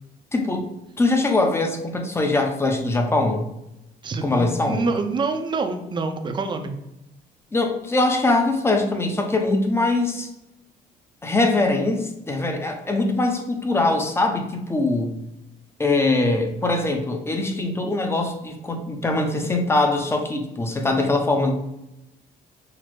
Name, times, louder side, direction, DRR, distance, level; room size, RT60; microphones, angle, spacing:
voice 1, 0.3-0.7 1.0-3.5 4.2-4.8 7.5-10.3 11.2-15.2 15.8-21.5, left 2 dB, 15° left, 4 dB, 0.6 m, -22 dB
voice 2, 4.0-6.7, right 3 dB, 30° right, 6 dB, 0.5 m, -26 dB
5.9 x 2.0 x 3.0 m, 0.90 s
cardioid pair, 110°, 17 cm